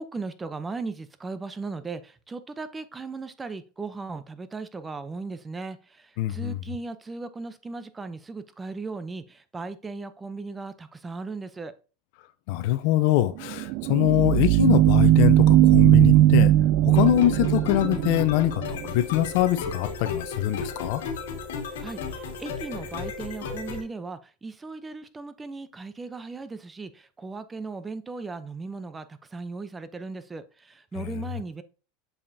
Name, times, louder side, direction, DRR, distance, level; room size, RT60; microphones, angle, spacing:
voice 1, 0.0-11.7 21.7-31.6, right 3 dB, 15° right, 0.6 m, -37 dB
voice 2, 6.2-6.6 12.5-16.5 16.8-21.0, left 14 dB, 65° left, 0.6 m, -23 dB
sound 1, 13.4-18.9, right 13 dB, 60° right, 0.3 m, -19 dB
sound 2, 16.9-23.8, left 5 dB, 85° left, 1.7 m, -34 dB
7.1 x 5.5 x 2.7 m
supercardioid pair, 110°, 0 cm